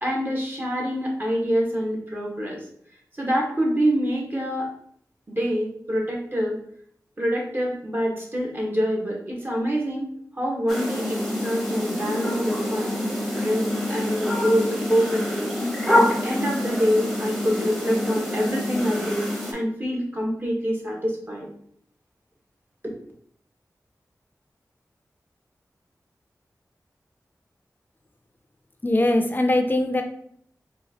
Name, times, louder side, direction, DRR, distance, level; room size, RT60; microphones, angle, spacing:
voice 1, 0.0-2.6 3.2-4.7 5.3-6.6 7.2-10.1 10.4-13.0 13.3-15.5 15.9-19.2 19.5-21.5 22.8-22.9, equal, 30° right, -2 dB, 1.2 m, -25 dB
sound 1, 10.7-19.5, left 1 dB, 5° right, 1.0 m, -26 dB
voice 2, 28.8-30.0, left 1 dB, 30° left, 5 dB, 0.5 m, -21 dB
4.0 x 2.5 x 2.8 m, 0.65 s
cardioid pair, 45°, 7 cm